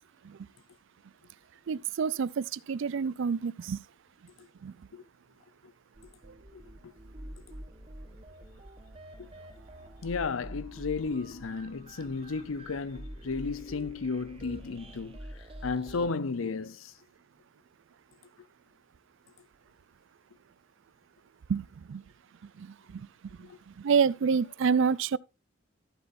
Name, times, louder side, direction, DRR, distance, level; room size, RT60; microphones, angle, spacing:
voice 1, 1.7-3.8 4.6-4.7 21.5-22.0 22.4-23.1 23.4-25.2, right 6 dB, 65° right, 0.4 m, -28 dB
sound 1, 5.9-16.1, right 1 dB, 30° right, 1.4 m, -46 dB
voice 2, 10.0-15.2 15.6-16.9 23.4-23.6, left 4 dB, 85° left, 0.6 m, -33 dB
13.5 x 8.0 x 2.5 m
head